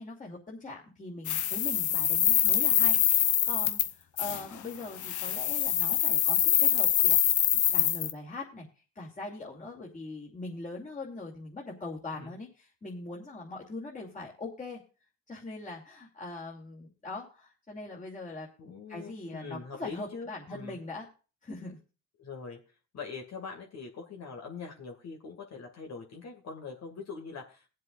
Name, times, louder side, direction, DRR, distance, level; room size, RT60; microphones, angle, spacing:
voice 1, 0.0-8.7 8.9-14.8 15.3-21.1 21.4-21.8, left 2 dB, 25° left, -4 dB, 2.8 m, -41 dB
sound 1, 1.3-3.9 4.2-4.4 5.0-8.1, left 11 dB, 75° left, 0.9 m, -25 dB
voice 2, 18.6-20.8 22.2-22.6 22.9-27.7, left 5 dB, 60° left, 1 dB, 2.4 m, -43 dB
21.5 x 7.5 x 2.5 m, 0.34 s
cardioid pair, 90°, 30 cm